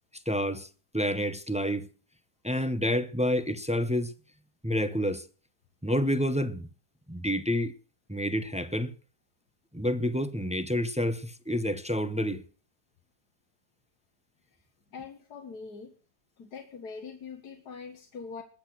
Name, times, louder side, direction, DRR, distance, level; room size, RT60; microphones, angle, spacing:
voice 1, 0.3-0.7 0.9-1.9 2.4-4.1 4.6-5.2 5.8-6.7 7.1-7.7 8.1-8.9 9.7-12.4, equal, 5° right, 0.6 m, -28 dB
voice 2, 14.9-15.9 16.4-18.4, left 5 dB, 90° left, 2.1 m, -43 dB
20.5 x 8.3 x 6.0 m
omnidirectional pair, 1.7 m